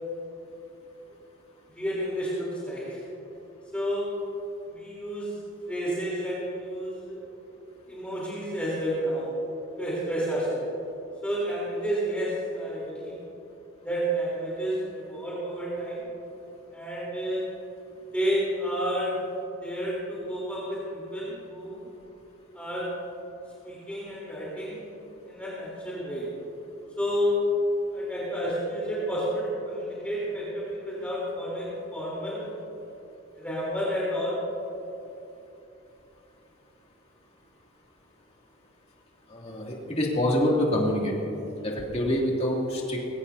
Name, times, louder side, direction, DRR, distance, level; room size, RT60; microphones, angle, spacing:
voice 1, 1.7-3.0 3.7-4.1 4.7-5.3 5.7-7.2 7.9-9.3 9.8-10.6 11.2-13.1 13.8-16.0 16.7-17.5 18.1-19.2 19.6-21.9 22.5-22.9 23.6-24.9 25.3-26.3 27.0-27.4 27.9-32.5 33.4-34.4, equal, 5° left, -7 dB, 3.5 m, -30 dB
voice 2, 39.3-41.1 41.6-43.0, left 1 dB, 30° left, -2 dB, 2.6 m, -26 dB
21.5 x 18.0 x 2.8 m, 2.9 s
head